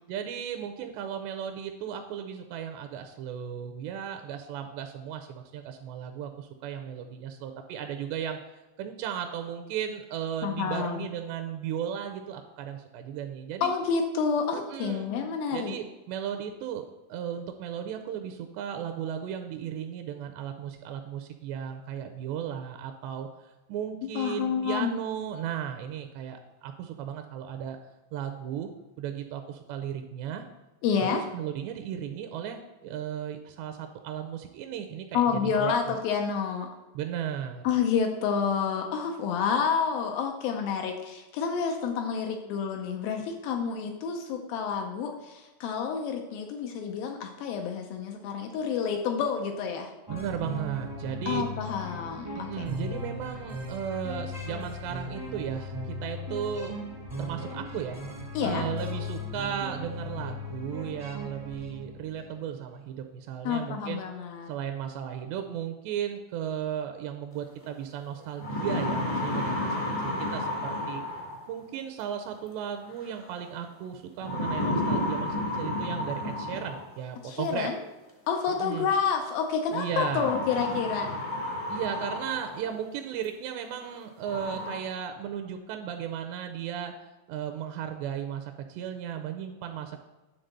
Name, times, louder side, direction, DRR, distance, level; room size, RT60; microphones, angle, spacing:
voice 1, 0.1-8.4 8.8-13.7 14.5-15.1 15.5-23.3 23.7-27.8 28.1-28.7 29.0-30.4 31.0-36.0 36.9-37.6 50.1-51.4 52.3-56.7 57.2-64.0 64.5-71.0 71.5-77.7 78.5-78.9 79.7-80.3 81.7-86.9 87.3-90.0, right 9 dB, 80° right, 6 dB, 2.7 m, -35 dB
voice 2, 10.4-11.1 13.6-15.8 24.2-25.0 30.8-31.2 35.1-36.7 37.6-49.9 51.3-52.7 58.3-58.6 63.4-64.5 77.2-77.8 78.3-81.1, left 6 dB, 85° left, 3 dB, 2.0 m, -29 dB
sound 1, 50.1-62.4, left 1 dB, 25° right, 0.4 m, -37 dB
sound 2, 67.6-67.7 68.2-71.6 73.0-73.4 74.2-77.0 78.3-78.4 79.9-82.8 83.2-83.3 83.9-84.0 84.2-84.8, left 1 dB, 30° left, 0.6 m, -32 dB
10.5 x 3.9 x 6.6 m, 1.1 s
omnidirectional pair, 5.1 m